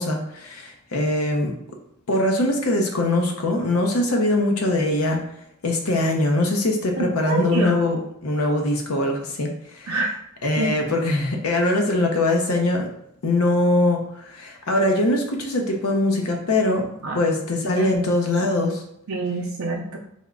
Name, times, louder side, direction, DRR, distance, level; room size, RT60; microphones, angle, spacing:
voice 1, 0.0-1.5 2.1-5.2 5.6-10.0 10.4-12.9 13.2-16.9 17.1-18.8, left 2 dB, 90° left, 2 dB, 0.7 m, -22 dB
voice 2, 7.0-7.8 9.9-10.1 10.6-10.7 17.0-17.2 17.8-17.9 19.1-20.0, right 3 dB, 70° right, -1 dB, 0.5 m, -26 dB
3.5 x 2.1 x 3.6 m, 0.76 s
head